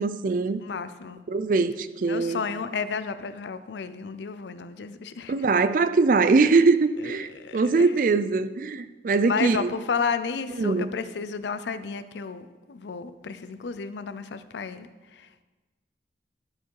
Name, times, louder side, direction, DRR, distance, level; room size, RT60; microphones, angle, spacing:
voice 1, 0.0-0.6 1.3-2.4 5.3-9.7 10.6-10.9, right 4 dB, 50° right, 13 dB, 0.4 m, -22 dB
voice 2, 0.6-1.2 2.1-5.3 7.0-8.1 9.2-15.4, left 5 dB, 80° left, 12 dB, 0.5 m, -32 dB
11.5 x 4.7 x 4.6 m, 1.2 s
head